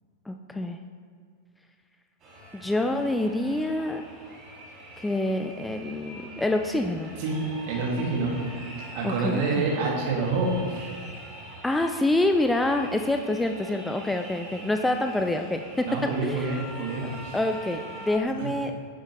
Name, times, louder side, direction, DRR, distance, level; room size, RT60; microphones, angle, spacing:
voice 1, 0.3-0.8 2.5-4.0 5.0-7.1 9.0-9.6 11.6-15.9 16.2-16.6 17.3-18.7, left 1 dB, 5° left, 5 dB, 0.4 m, -26 dB
sound 1, 2.2-18.2, right 1 dB, 30° right, 2.3 m, -44 dB
voice 2, 7.7-10.9 15.8-17.4 18.4-18.5, right 3 dB, 45° right, -1 dB, 2.0 m, -28 dB
10.0 x 7.5 x 3.1 m, 2.1 s
figure-of-eight pair, 90°, 0 cm